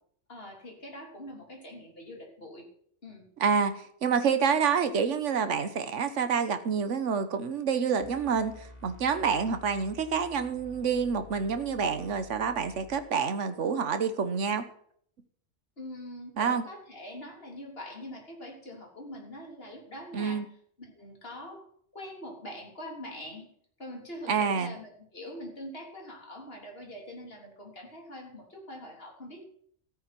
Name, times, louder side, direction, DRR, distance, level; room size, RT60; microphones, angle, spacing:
voice 1, 0.3-2.7 3.0-3.3 15.8-20.5 20.8-21.7 21.9-23.5 23.8-29.4, left 1 dB, 55° left, 0 dB, 3.8 m, -43 dB
voice 2, 3.4-14.6 16.4-16.6 20.1-20.4 24.3-24.7, right 6 dB, 85° right, 9 dB, 1.4 m, -28 dB
sound 1, 8.0-13.0, left 3 dB, 75° left, 4.7 m, -50 dB
14.0 x 9.1 x 6.0 m, 0.63 s
omnidirectional pair, 1.2 m